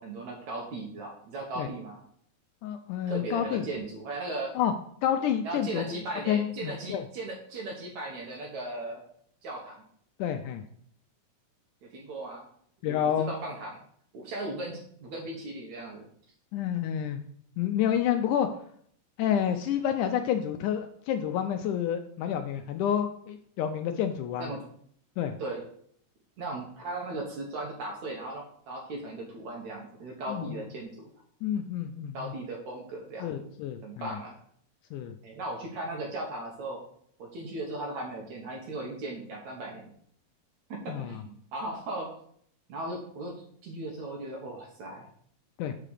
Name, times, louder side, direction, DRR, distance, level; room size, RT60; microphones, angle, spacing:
voice 1, 0.0-2.0 3.1-4.5 5.4-9.0 9.4-9.8 11.9-12.5 12.9-13.8 14.1-16.1 24.4-24.6 25.4-25.6 26.4-31.1 32.1-33.5 33.8-34.4 35.2-36.8 37.2-39.9 40.7-42.1 42.7-45.1, right 2 dB, 65° right, 0 dB, 2.3 m, -37 dB
voice 2, 2.6-3.6 4.6-4.7 5.0-6.0 6.3-7.0 10.2-10.6 12.8-13.3 16.5-17.2 17.6-18.5 19.2-24.5 25.2-25.4 30.3-30.6 31.4-32.3 33.2-34.1 34.9-35.1 40.9-41.2 45.6-45.7, left 9 dB, 80° left, 7 dB, 1.8 m, -29 dB
6.6 x 4.9 x 6.5 m, 0.64 s
omnidirectional pair, 4.0 m